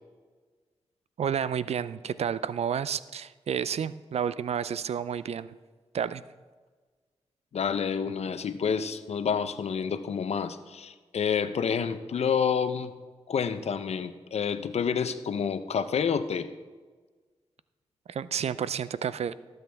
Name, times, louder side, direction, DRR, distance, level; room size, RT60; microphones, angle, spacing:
voice 1, 1.2-5.6 5.9-6.2 18.1-19.3, right 8 dB, 70° right, 16 dB, 0.4 m, -30 dB
voice 2, 7.5-12.9 13.3-16.5, left 7 dB, 70° left, 11 dB, 0.7 m, -29 dB
18.0 x 8.0 x 3.5 m, 1.4 s
cardioid pair, 50°, 11 cm